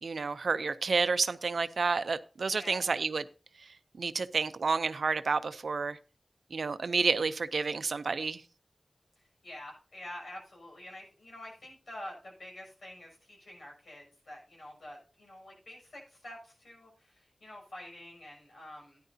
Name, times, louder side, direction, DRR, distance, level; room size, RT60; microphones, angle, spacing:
voice 1, 0.0-3.2 4.0-6.0 6.5-8.4, right 4 dB, 85° right, 0.5 m, -30 dB
voice 2, 2.5-2.9 9.2-19.0, left 1 dB, 85° left, 6.5 m, -47 dB
13.0 x 10.5 x 2.7 m
cardioid pair, 45°, 0 cm